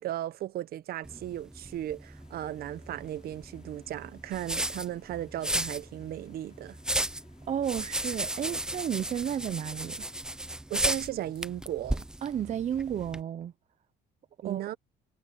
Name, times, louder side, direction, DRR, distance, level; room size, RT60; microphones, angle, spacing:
voice 1, 0.0-6.8 10.7-12.1 14.4-14.8, right 13 dB, 65° right, 0.9 m, -36 dB
sound 1, 1.0-13.2, right 1 dB, 5° right, 0.5 m, -35 dB
sound 2, 2.2-10.2, left 7 dB, 45° left, 6.5 m, -62 dB
voice 2, 7.5-10.1 12.2-13.5 14.4-14.6, right 9 dB, 45° right, 0.7 m, -32 dB
cardioid pair, 110°, 17 cm